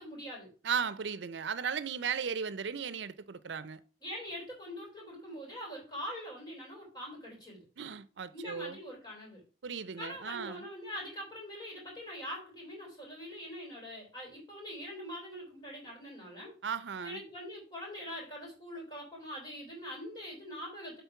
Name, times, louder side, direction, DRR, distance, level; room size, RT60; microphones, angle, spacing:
voice 1, 0.0-0.5 4.0-7.6 8.3-9.4 10.0-16.5 17.0-21.0, equal, 25° left, 3.4 m, -43 dB
voice 2, 0.6-3.8 7.8-8.8 9.6-10.7 16.6-17.2, right 6 dB, 85° right, 0.6 m, -36 dB
8.2 x 3.8 x 5.8 m
head